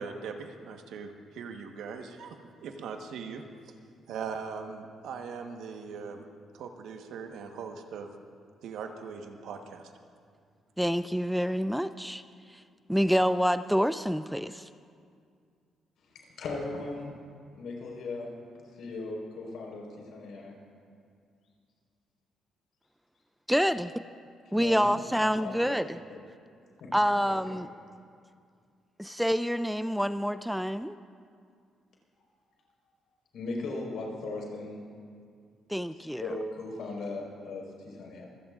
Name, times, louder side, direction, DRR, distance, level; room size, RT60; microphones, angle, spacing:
voice 1, 0.0-2.4 2.6-3.4 4.1-6.2 6.5-8.1 8.6-9.9, right 5 dB, 80° right, 5 dB, 1.2 m, -40 dB
voice 2, 10.8-12.2 12.5-12.6 12.9-14.7 23.5-24.0 24.5-26.0 26.9-27.7 29.0-31.0 35.7-36.3, equal, ahead, 13 dB, 0.3 m, -27 dB
voice 3, 16.1-17.1 17.5-18.3 18.8-19.8 20.1-20.5 24.5-24.9 25.4-25.8 26.1-26.2 26.8-26.9 27.5-27.6 33.3-34.8 36.0-38.2, left 3 dB, 75° left, -1 dB, 4.3 m, -37 dB
25.0 x 17.0 x 2.5 m, 2.2 s
cardioid pair, 90°, 0 cm